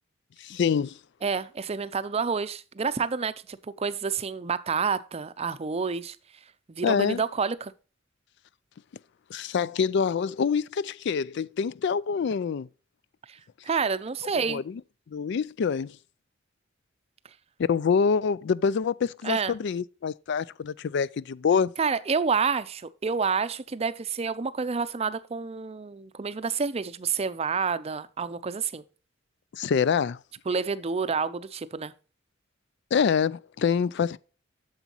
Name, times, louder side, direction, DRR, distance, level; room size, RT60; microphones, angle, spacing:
voice 1, 0.4-1.0 6.8-7.2 9.3-12.7 14.5-14.8 15.1-16.0 17.6-21.7 29.5-30.2 32.9-34.2, left 6 dB, 60° left, 0.4 m, -26 dB
voice 2, 1.2-6.2 6.7-7.7 13.3-13.4 13.6-14.6 19.2-19.5 21.8-28.8 30.5-31.9, right 5 dB, 30° right, 0.5 m, -29 dB
9.1 x 7.2 x 2.9 m
head